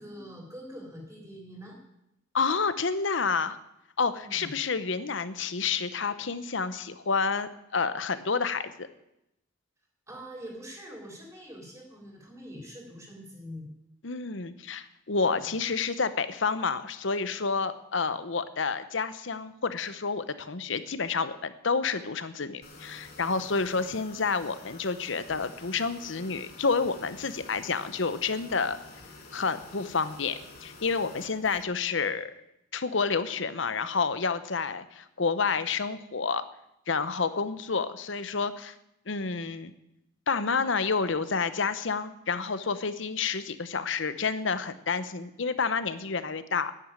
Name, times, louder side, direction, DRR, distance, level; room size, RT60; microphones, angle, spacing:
voice 1, 0.0-1.8 4.1-4.5 10.1-13.7 18.0-18.1, equal, 15° right, 0 dB, 3.7 m, -44 dB
voice 2, 2.3-3.6 4.0-8.9 14.0-28.8 29.3-32.3 32.7-36.4 36.9-38.7 39.1-39.7 40.3-46.7, left 5 dB, 65° left, 13 dB, 0.9 m, -29 dB
sound 1, 22.6-31.6, left 3 dB, 50° left, 2.6 m, -49 dB
10.5 x 9.1 x 9.0 m, 0.83 s
head